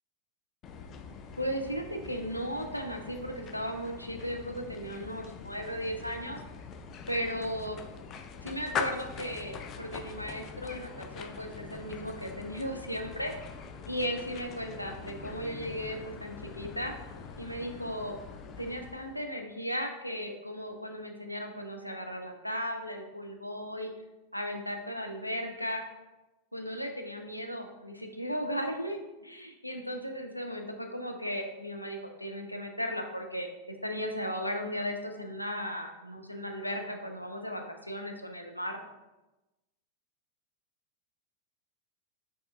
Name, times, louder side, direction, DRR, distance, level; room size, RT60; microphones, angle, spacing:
sound 1, 0.6-19.2, left 5 dB, 30° left, 0.4 m, -43 dB
voice 1, 1.4-6.4 7.1-7.8 8.4-13.4 13.9-16.9 17.4-18.2 18.6-23.9 24.3-25.8 26.5-38.8, equal, 90° left, 4 dB, 0.5 m, -36 dB
4.5 x 4.2 x 2.3 m, 1.0 s
figure-of-eight pair, 90°, 0 cm